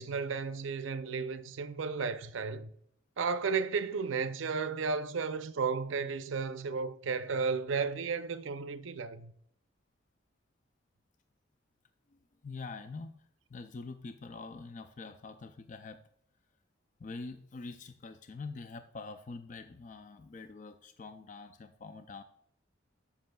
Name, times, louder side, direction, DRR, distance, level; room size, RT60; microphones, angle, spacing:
voice 1, 0.0-2.7 3.2-9.3, right 5 dB, 80° right, 0.5 m, -33 dB
voice 2, 12.4-13.1 13.5-16.0 17.0-22.2, left 4 dB, 40° left, 0.4 m, -45 dB
13.0 x 5.8 x 2.3 m
head